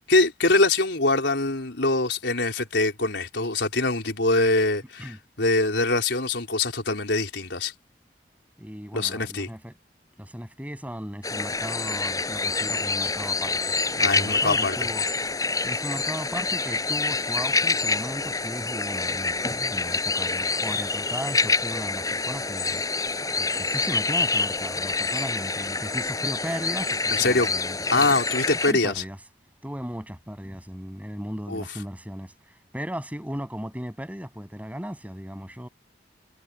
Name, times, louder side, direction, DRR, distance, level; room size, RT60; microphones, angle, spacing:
voice 1, 0.1-7.7 8.9-9.5 14.0-14.7 27.1-27.5 27.9-28.9 31.5-31.6, left 2 dB, 80° left, 4.4 m, -23 dB
voice 2, 8.6-9.7 10.2-15.1 15.6-19.4 19.7-23.0 23.4-28.2 28.7-29.2 29.6-32.3 32.7-35.7, equal, 10° right, 8.0 m, -36 dB
sound 1, 11.2-28.7, left 3 dB, 20° left, 6.0 m, -27 dB
head